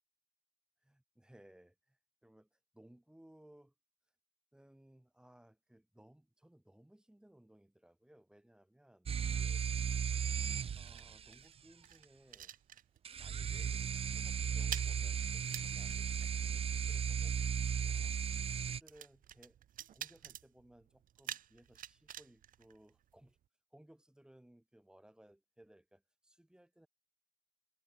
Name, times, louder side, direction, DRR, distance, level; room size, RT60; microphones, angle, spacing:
voice 1, 0.8-3.7 4.5-9.6 10.7-12.6 13.2-19.6 19.9-23.4 23.7-26.9, right 1 dB, 5° right, 7.7 m, -63 dB
sound 1, 9.1-11.4 13.0-18.8, right 7 dB, 35° right, 0.8 m, -36 dB
sound 2, 10.7-13.3 13.5-13.8 14.1-23.5, right 11 dB, 55° right, 1.2 m, -50 dB
cardioid pair, 110°, 17 cm